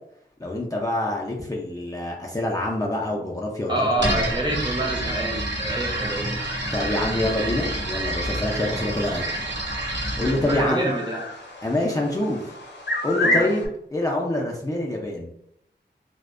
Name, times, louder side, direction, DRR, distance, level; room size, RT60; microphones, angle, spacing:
voice 1, 0.4-4.2 6.7-9.4 10.2-10.9 11.6-12.4 13.0-15.3, left 1 dB, 20° left, -3 dB, 0.4 m, -26 dB
voice 2, 3.7-6.4 10.4-11.2 13.2-13.4, right 1 dB, 25° right, -2 dB, 0.7 m, -26 dB
sound 1, 4.0-10.6, right 1 dB, 80° right, 0.8 m, -28 dB
sound 2, 5.7-13.7, left 2 dB, 70° left, 0.6 m, -32 dB
2.5 x 2.1 x 2.4 m, 0.75 s
wide cardioid pair, 70°, 19 cm